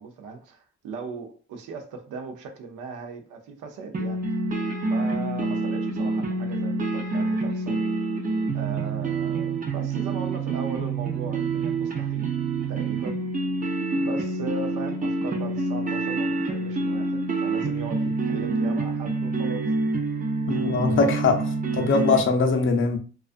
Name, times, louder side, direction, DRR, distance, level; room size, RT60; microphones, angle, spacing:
voice 1, 0.0-4.2 4.9-7.8 8.5-12.3 12.7-13.2 13.9-19.7, right 4 dB, 90° right, 0.6 m, -38 dB
sound 1, 3.9-22.2, right 3 dB, 30° right, 0.5 m, -27 dB
voice 2, 20.5-23.0, left 4 dB, 40° left, 0.6 m, -22 dB
2.3 x 2.3 x 2.4 m
cardioid pair, 90°, 30 cm